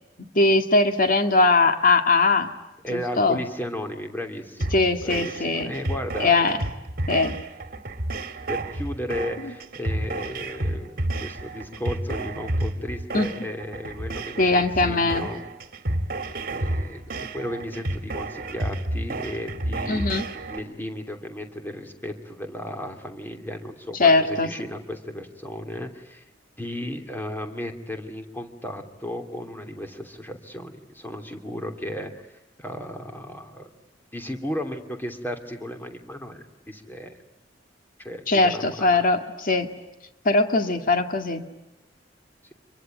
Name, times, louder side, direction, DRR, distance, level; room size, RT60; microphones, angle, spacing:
voice 1, 0.2-2.5 2.9-3.4 4.7-5.7 6.2-6.6 7.1-7.4 9.4-9.5 13.1-13.3 14.4-15.3 19.9-20.2 24.0-24.5 38.3-39.7 40.2-41.5, left 3 dB, 50° left, 7 dB, 2.0 m, -20 dB
voice 2, 2.8-4.7 5.0-6.3 8.5-15.4 16.5-20.0 20.5-26.2 26.6-32.3 32.6-33.7 34.1-37.2 38.0-39.0, equal, 10° left, 5 dB, 3.0 m, -34 dB
sound 1, 4.6-20.6, right 1 dB, 55° right, 2.0 m, -31 dB
27.5 x 23.5 x 9.3 m, 0.95 s
head